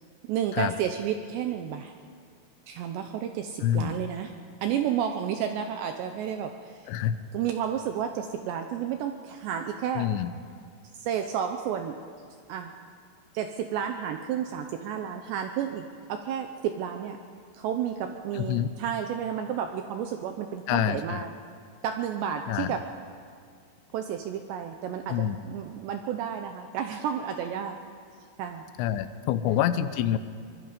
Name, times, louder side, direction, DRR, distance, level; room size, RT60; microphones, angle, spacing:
voice 1, 0.2-1.9 2.7-4.3 4.6-6.9 7.3-10.1 10.9-12.0 12.5-12.7 13.3-17.2 17.5-21.3 21.8-22.8 23.9-27.8 28.4-28.7 29.5-29.6, right 9 dB, 80° right, 6 dB, 2.6 m, -31 dB
voice 2, 3.6-4.0 6.9-7.2 10.0-10.3 18.3-18.7 20.7-21.2 22.5-22.8 25.1-25.4 28.8-30.2, left 11 dB, 80° left, 12 dB, 2.8 m, -27 dB
24.5 x 21.0 x 5.2 m, 2.2 s
omnidirectional pair, 5.8 m